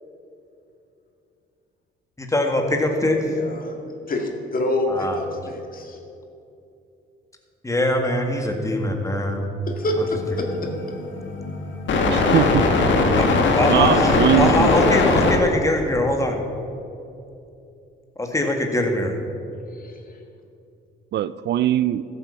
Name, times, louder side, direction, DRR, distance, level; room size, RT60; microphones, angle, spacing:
voice 1, 2.2-3.2 4.9-5.3 7.6-9.5 13.2-13.3 13.5-16.4 18.2-19.1, left 1 dB, 15° left, 3 dB, 1.9 m, -22 dB
voice 2, 3.2-6.0 9.7-10.7 14.1-14.3 14.6-15.0 19.7-20.2, left 2 dB, 45° left, 2 dB, 2.1 m, -27 dB
sound 1, 9.8-15.4, left 3 dB, 70° left, 1.6 m, -20 dB
voice 3, 12.0-12.7 13.7-14.7 21.1-22.0, right 12 dB, 60° right, 16 dB, 0.4 m, -21 dB
14.0 x 8.5 x 5.8 m, 2.7 s
cardioid pair, 90°, 20 cm